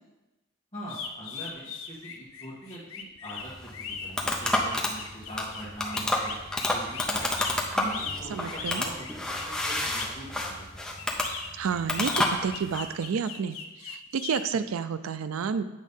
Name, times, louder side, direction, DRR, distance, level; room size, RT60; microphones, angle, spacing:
voice 1, 0.7-5.0 5.3-6.4 6.7-7.3 7.7-10.9, equal, 25° left, -9 dB, 1.4 m, -42 dB
sound 1, 0.9-10.2 11.0-14.4, left 6 dB, 70° left, 0.6 m, -39 dB
sound 2, 3.4-12.9, left 1 dB, 5° left, 0.6 m, -30 dB
voice 2, 8.3-8.9 11.5-13.6 13.8-15.6, right 6 dB, 70° right, 12 dB, 0.4 m, -30 dB
8.3 x 3.1 x 5.4 m, 1.1 s
head